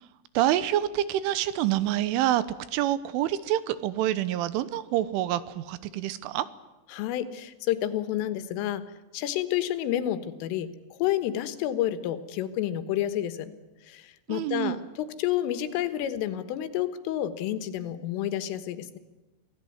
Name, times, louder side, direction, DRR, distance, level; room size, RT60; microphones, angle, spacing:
voice 1, 0.4-2.4 2.7-6.5 14.3-14.8, right 13 dB, 80° right, 15 dB, 3.5 m, -27 dB
voice 2, 6.9-8.8 9.1-13.5 13.9-19.0, left 12 dB, 85° left, 12 dB, 4.0 m, -30 dB
26.0 x 17.5 x 9.5 m, 1.1 s
omnidirectional pair, 5.6 m